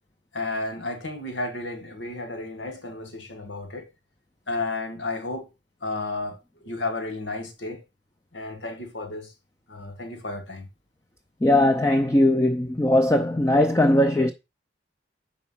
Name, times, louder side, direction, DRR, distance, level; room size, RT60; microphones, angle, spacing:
voice 1, 0.3-3.9 4.5-5.5 5.8-7.8 8.3-9.3 9.7-10.7, left 2 dB, 80° left, 1.9 m, -32 dB
voice 2, 11.4-14.3, left 1 dB, 15° left, 0.5 m, -19 dB
7.0 x 4.8 x 5.7 m
head